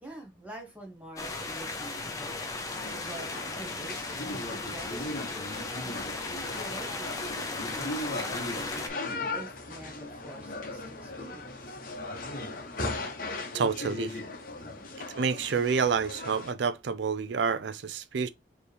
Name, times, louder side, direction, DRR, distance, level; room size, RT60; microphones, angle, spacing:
voice 1, 0.0-2.5 3.0-8.3 8.6-9.0 9.3-11.8 14.6-14.9, right 1 dB, 10° right, 1.2 m, -47 dB
sound 1, 1.2-8.9, left 3 dB, 20° left, 0.6 m, -36 dB
sound 2, 2.7-16.5, left 2 dB, 45° left, 0.9 m, -38 dB
voice 2, 13.5-14.2 15.2-18.3, right 5 dB, 70° right, 0.4 m, -28 dB
4.4 x 2.9 x 3.3 m
head